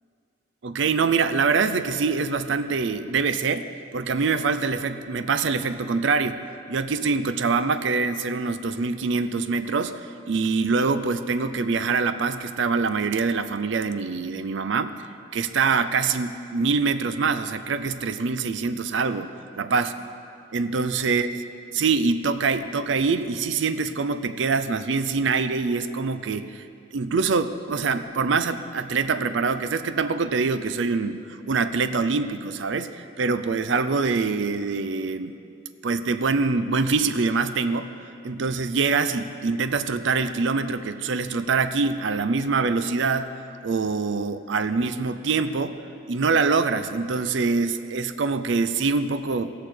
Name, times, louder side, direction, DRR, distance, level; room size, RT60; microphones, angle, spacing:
voice 1, 0.6-6.4 6.7-14.9 15.3-19.3 19.6-19.9 20.5-21.3 21.7-26.6 26.9-35.3 35.8-37.9 38.2-45.8 46.1-49.5, right 4 dB, 60° right, 11 dB, 0.5 m, -24 dB
18.5 x 6.5 x 4.4 m, 2.5 s
head